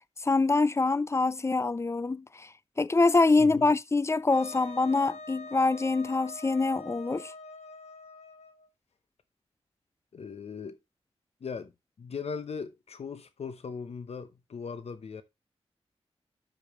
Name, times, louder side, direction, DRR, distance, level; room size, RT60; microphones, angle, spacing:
voice 1, 0.2-2.5 2.8-7.3, left 3 dB, 25° left, 0.4 m, -25 dB
voice 2, 3.4-3.7 10.1-10.8 11.4-11.7 12.0-15.2, left 5 dB, 75° left, 0.8 m, -39 dB
Wind instrument woodwind instrument, 4.3-8.7, left 2 dB, 90° left, 1.3 m, -45 dB
11.5 x 5.3 x 3.1 m
wide cardioid pair, 95°, 11 cm